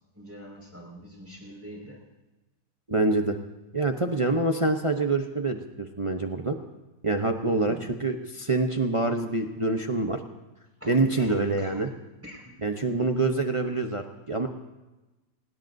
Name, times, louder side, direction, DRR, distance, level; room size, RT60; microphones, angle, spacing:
voice 1, 0.1-2.0 7.6-7.9 10.8-11.7 12.2-12.5 12.9-13.1, equal, 5° right, -2 dB, 5.2 m, -45 dB
voice 2, 2.9-3.4 3.7-6.6 7.0-10.2 10.9-11.9 12.6-14.5, right 2 dB, 35° right, 4 dB, 0.5 m, -26 dB
25.0 x 19.0 x 2.7 m, 1.1 s
omnidirectional pair, 1.9 m